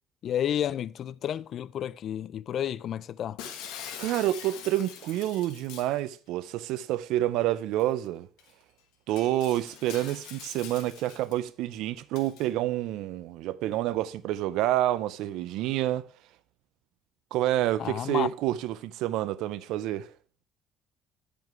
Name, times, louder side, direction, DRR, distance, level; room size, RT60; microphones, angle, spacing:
voice 1, 0.2-3.4 17.8-18.3, left 10 dB, 55° left, 0.3 m, -31 dB
Shatter, 3.4-6.0 7.8-7.9 8.4-8.5 9.1-11.3 12.1-12.5, left 8 dB, 85° left, 1.3 m, -43 dB
voice 2, 4.0-8.3 9.1-16.1 17.3-20.1, right 14 dB, 80° right, 0.5 m, -28 dB
9.4 x 5.1 x 4.6 m
cardioid pair, 110°, 0 cm